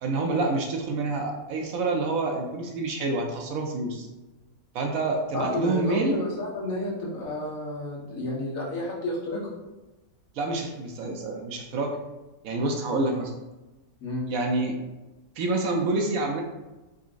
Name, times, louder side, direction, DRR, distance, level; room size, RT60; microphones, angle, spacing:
voice 1, 0.0-4.1 4.7-6.2 10.3-12.0 12.4-13.3 14.3-14.7 15.4-16.4, right 2 dB, 70° right, 2 dB, 1.0 m, -27 dB
voice 2, 5.3-9.4 14.0-14.3, left 1 dB, 65° left, -5 dB, 1.4 m, -30 dB
3.8 x 3.6 x 2.4 m, 1.1 s
omnidirectional pair, 1.6 m